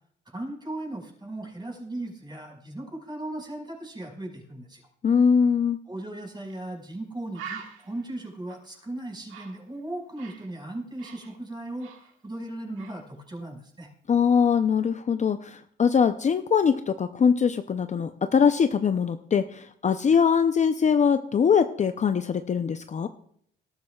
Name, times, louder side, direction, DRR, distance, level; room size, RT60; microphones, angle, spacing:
voice 1, 0.3-4.8 5.9-11.9 12.2-13.9, right 1 dB, 20° right, 0 dB, 5.2 m, -37 dB
voice 2, 5.0-5.8 14.1-23.1, left 6 dB, 35° left, 9 dB, 0.6 m, -22 dB
Bird, 6.5-6.6 6.9-7.0 7.3-10.5 10.8-12.5 12.8-13.1, right 7 dB, 85° right, 1.8 m, -44 dB
19.0 x 13.0 x 2.4 m, 0.64 s
cardioid pair, 90°, 20 cm